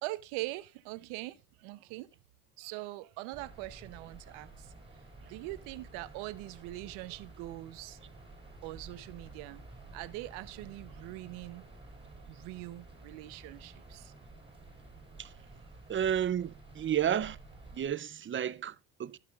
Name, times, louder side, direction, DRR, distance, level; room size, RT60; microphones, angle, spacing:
voice 1, 0.0-2.1 2.6-4.7 5.2-8.0 8.6-9.6 9.9-11.6 12.3-14.1, right 19 dB, 75° right, 0.9 m, -42 dB
sound 1, 3.3-17.9, right 2 dB, 10° right, 3.4 m, -52 dB
voice 2, 15.9-17.4 17.7-19.2, right 9 dB, 25° right, 0.5 m, -32 dB
17.5 x 6.0 x 2.4 m
supercardioid pair, 85°, 48 cm